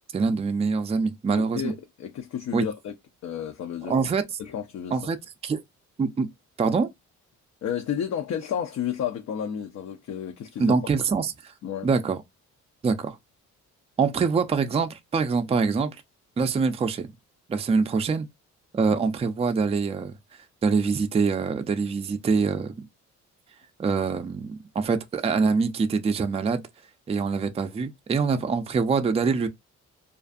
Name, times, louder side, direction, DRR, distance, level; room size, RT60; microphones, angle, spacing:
voice 1, 0.1-1.7 2.5-2.6 3.9-4.2 4.9-5.2 5.4-5.6 6.0-6.3 6.6-6.9 10.6-11.5 11.8-12.2 12.8-13.2 14.0-16.0 16.4-17.1 17.5-18.3 18.7-20.1 20.6-22.9 23.8-26.6 27.1-29.5, right 5 dB, 20° right, 0.4 m, -24 dB
voice 2, 1.3-2.9 3.2-4.1 4.4-5.0 7.6-10.8 11.6-11.9, left 8 dB, 60° left, 0.5 m, -32 dB
2.5 x 2.4 x 2.3 m
cardioid pair, 90°, 30 cm